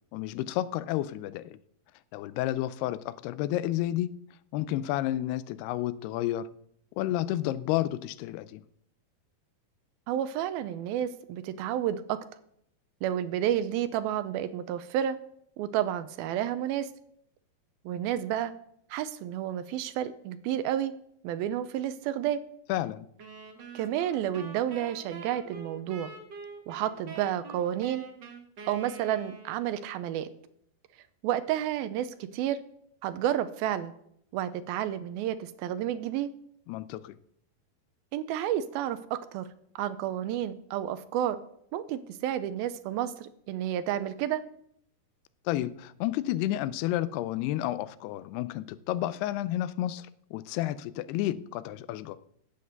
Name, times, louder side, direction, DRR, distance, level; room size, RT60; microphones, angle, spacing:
voice 1, 0.1-1.6 2.1-4.2 4.5-6.5 7.0-8.6 22.7-23.1 36.7-37.1 45.5-52.2, left 14 dB, 90° left, 2.6 m, -31 dB
voice 2, 10.1-12.2 13.0-15.2 15.6-16.9 17.9-18.5 18.9-20.9 21.2-22.4 23.7-26.1 26.7-28.0 28.7-30.3 31.2-32.6 33.0-33.9 34.3-36.3 38.1-39.5 39.8-41.4 41.7-44.4, right 11 dB, 80° right, 2.4 m, -30 dB
sound 1, 23.2-29.8, right 4 dB, 65° right, 1.1 m, -45 dB
10.0 x 8.5 x 7.9 m
omnidirectional pair, 4.5 m